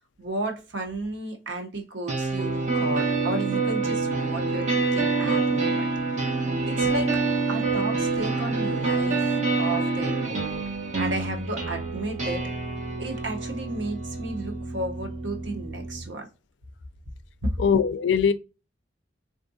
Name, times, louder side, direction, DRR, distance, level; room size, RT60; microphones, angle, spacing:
voice 1, 0.2-5.9 6.7-7.2 7.5-9.3 9.6-10.6 11.0-12.5 13.0-16.3 17.4-17.5, right 2 dB, 80° right, 0.8 m, -33 dB
sound 1, 2.1-16.1, right 3 dB, 40° right, 1.1 m, -27 dB
voice 2, 17.6-18.3, left 6 dB, 75° left, 0.3 m, -21 dB
3.5 x 2.5 x 2.6 m
head